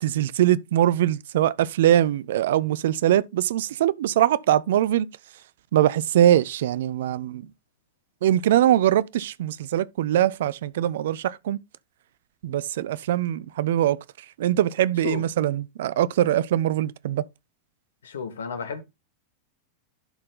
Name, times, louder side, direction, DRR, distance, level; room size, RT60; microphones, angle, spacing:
voice 1, 0.0-5.1 5.7-7.4 8.2-11.6 12.4-14.0 14.4-17.2, right 12 dB, 55° right, 0.4 m, -22 dB
voice 2, 18.0-18.8, left 6 dB, 65° left, 1.4 m, -32 dB
11.0 x 4.3 x 3.7 m
figure-of-eight pair, 90°, 0 cm